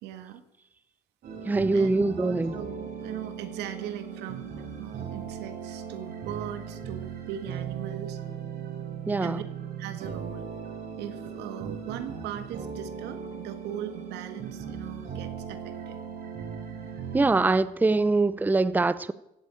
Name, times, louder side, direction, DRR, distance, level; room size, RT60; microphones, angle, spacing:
voice 1, 0.0-0.4 1.7-8.2 9.2-9.4 9.8-10.5 11.0-16.0, right 10 dB, 85° right, 1.8 m, -39 dB
sound 1, 1.2-17.5, right 7 dB, 60° right, 5.6 m, -38 dB
voice 2, 1.5-2.5 9.1-9.4 17.1-19.1, right 3 dB, 10° right, 0.6 m, -23 dB
16.0 x 8.6 x 9.1 m
cardioid pair, 110°, 17 cm